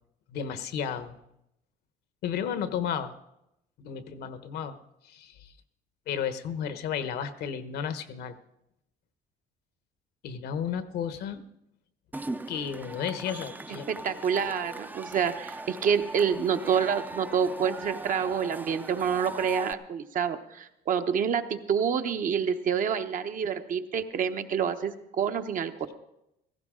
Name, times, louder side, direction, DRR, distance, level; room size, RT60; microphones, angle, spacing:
voice 1, 0.3-1.2 2.2-3.2 3.8-4.8 5.0-5.5 6.1-8.4 10.2-11.4 12.5-13.9, left 8 dB, 70° left, 11 dB, 1.1 m, -33 dB
Cheering / Crowd, 12.1-19.7, right 2 dB, 10° right, 0.5 m, -40 dB
voice 2, 13.9-25.7, right 7 dB, 50° right, 7 dB, 1.0 m, -28 dB
16.5 x 15.0 x 3.8 m, 0.84 s
cardioid pair, 110°, 17 cm